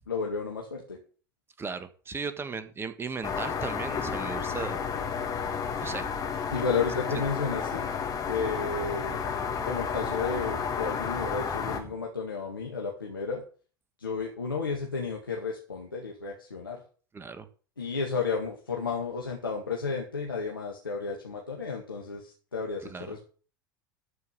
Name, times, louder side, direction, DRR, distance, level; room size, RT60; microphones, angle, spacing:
voice 1, 0.1-1.0 6.5-7.9 8.3-9.2 9.6-13.4 14.0-16.8 17.8-23.2, left 5 dB, 85° left, -1 dB, 2.1 m, -32 dB
voice 2, 1.6-4.8 5.8-6.4 7.1-7.2 17.1-17.5 22.8-23.1, right 5 dB, 20° right, 11 dB, 1.4 m, -37 dB
sound 1, 3.2-11.8, left 6 dB, 35° left, 2.4 m, -32 dB
13.5 x 5.4 x 7.1 m, 0.39 s
figure-of-eight pair, 80°, 11 cm